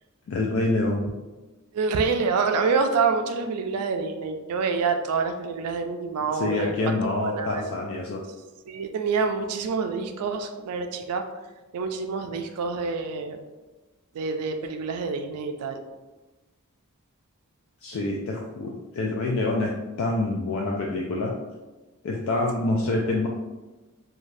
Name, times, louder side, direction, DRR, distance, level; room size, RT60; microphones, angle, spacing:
voice 1, 0.3-1.1 6.3-8.2 17.8-19.7 20.0-21.3 22.0-23.3, left 2 dB, 60° left, -1 dB, 0.3 m, -26 dB
voice 2, 1.7-6.7 7.0-7.7 8.7-11.2 11.7-13.4 14.1-15.8, right 5 dB, 90° right, 6 dB, 0.3 m, -27 dB
3.2 x 2.3 x 2.5 m, 1.2 s
head